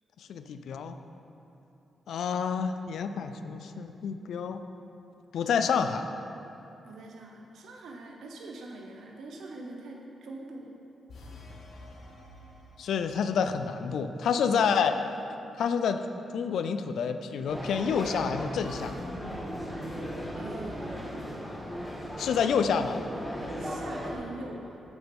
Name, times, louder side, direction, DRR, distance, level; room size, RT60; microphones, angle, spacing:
voice 1, 0.2-1.0 2.1-4.6 5.3-6.1 12.8-15.0 15.5-16.1 16.3-19.0 22.2-23.0, left 6 dB, 75° left, 9 dB, 0.3 m, -28 dB
voice 2, 6.8-10.8 20.3-21.8 23.6-24.8, right 2 dB, 70° right, 0 dB, 0.6 m, -44 dB
sound 1, 11.1-13.4, left 1 dB, 55° left, 0.8 m, -48 dB
sound 2, 17.5-24.2, equal, 5° left, 1.0 m, -37 dB
5.9 x 5.4 x 5.4 m, 2.9 s
wide cardioid pair, 160°, 0 cm